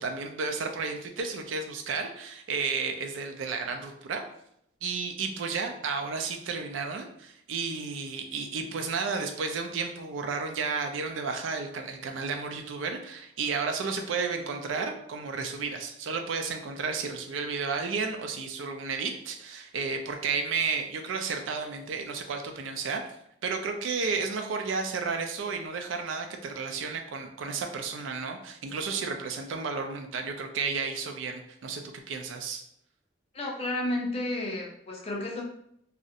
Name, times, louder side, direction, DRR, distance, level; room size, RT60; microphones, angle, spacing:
voice 1, 0.0-4.2 4.8-23.0 23.4-32.6, right 4 dB, 90° right, 4 dB, 0.4 m, -32 dB
voice 2, 33.3-35.4, left 1 dB, 30° left, -1 dB, 0.4 m, -31 dB
2.4 x 2.0 x 2.7 m, 0.73 s
head